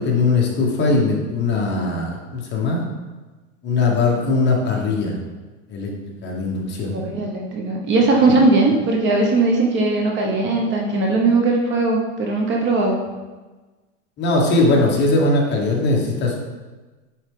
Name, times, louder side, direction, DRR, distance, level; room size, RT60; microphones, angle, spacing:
voice 1, 0.0-2.8 3.6-5.2 5.7-5.9 6.2-7.0 14.2-16.3, left 3 dB, 30° left, -1 dB, 1.2 m, -20 dB
voice 2, 6.9-13.0, right 3 dB, 30° right, 0 dB, 0.9 m, -19 dB
8.8 x 4.0 x 3.7 m, 1.2 s
supercardioid pair, 150°, 38 cm